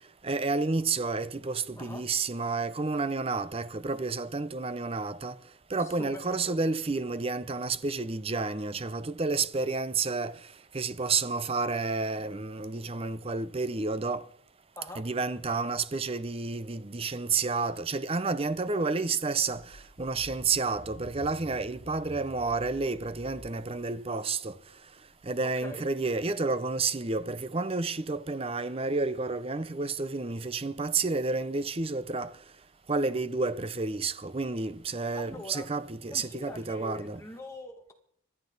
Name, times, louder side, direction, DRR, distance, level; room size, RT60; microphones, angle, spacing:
voice 1, 0.2-5.3 5.7-10.3 10.7-14.2 14.9-19.6 20.0-24.5 25.3-32.3 32.9-37.2, right 3 dB, 25° right, 0.6 m, -30 dB
voice 2, 6.0-6.6 14.8-15.0 25.6-25.8 35.1-35.7 36.1-37.9, left 1 dB, 15° left, 2.0 m, -43 dB
sound 1, 18.5-18.6 19.2-23.9 24.9-25.4 27.6-27.7 34.8-34.9 35.4-35.5 35.9-36.0, equal, 70° left, 1.7 m, -50 dB
26.5 x 11.0 x 4.0 m
head